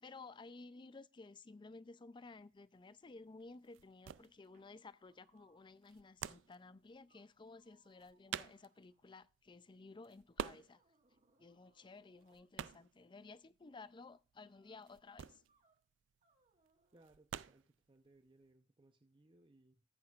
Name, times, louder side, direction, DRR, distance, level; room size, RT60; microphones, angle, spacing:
voice 1, 0.0-10.8 11.4-15.4, left 3 dB, 25° left, 0.4 m, -55 dB
sound 1, 2.2-18.5, right 8 dB, 85° right, 0.4 m, -50 dB
sound 2, 4.5-6.0 6.5-6.6 7.1-9.5 10.7-12.6 14.4-14.9 15.5-15.8 16.2-17.2, right 3 dB, 40° right, 1.6 m, -78 dB
voice 2, 16.9-19.8, right 2 dB, 25° right, 0.7 m, -67 dB
14.5 x 8.6 x 2.4 m
head